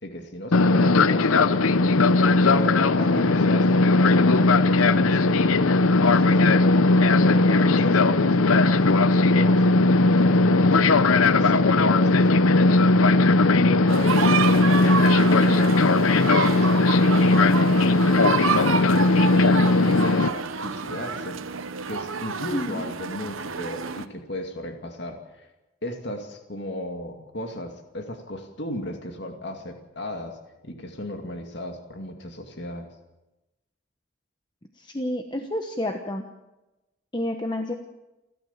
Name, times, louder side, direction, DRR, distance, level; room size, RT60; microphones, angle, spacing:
voice 1, 0.0-2.0 2.3-4.3 4.6-6.8 7.2-14.9 15.2-21.4 21.9-25.5 25.8-30.4 30.6-32.9, left 1 dB, 55° left, 5 dB, 2.4 m, -35 dB
Fixed-wing aircraft airplane, 0.5-20.3, left 3 dB, 90° left, 0.8 m, -18 dB
sound 1, 13.9-24.1, right 6 dB, 80° right, 1.1 m, -29 dB
voice 2, 22.5-22.9 34.7-36.3 37.1-37.7, left 1 dB, 20° left, 5 dB, 1.1 m, -29 dB
29.0 x 12.5 x 7.3 m, 1.0 s
head